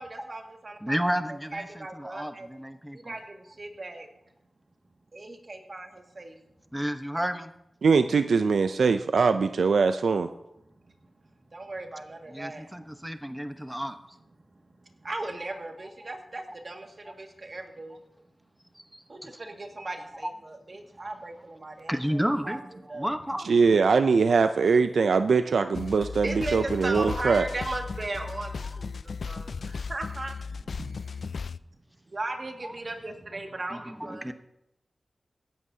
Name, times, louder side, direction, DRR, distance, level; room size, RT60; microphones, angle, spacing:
voice 1, 0.0-1.0 1.5-2.5 2.9-4.1 5.1-6.4 10.8-10.9 11.5-12.9 15.0-18.0 19.1-23.1 26.2-30.9 32.1-34.3, right 2 dB, 55° right, 3 dB, 2.0 m, -37 dB
voice 2, 0.8-3.1 6.7-7.5 12.3-14.0 16.0-16.1 18.9-19.3 20.2-20.3 21.9-22.6 22.9-23.5 32.6-32.7 33.7-34.3, equal, 5° right, 8 dB, 1.0 m, -31 dB
voice 3, 7.8-10.3 23.4-27.5, right 5 dB, 85° right, 9 dB, 0.4 m, -22 dB
sound 1, 25.7-31.6, left 5 dB, 75° left, 0.3 m, -36 dB
16.5 x 12.5 x 2.8 m, 0.85 s
cardioid pair, 45°, 0 cm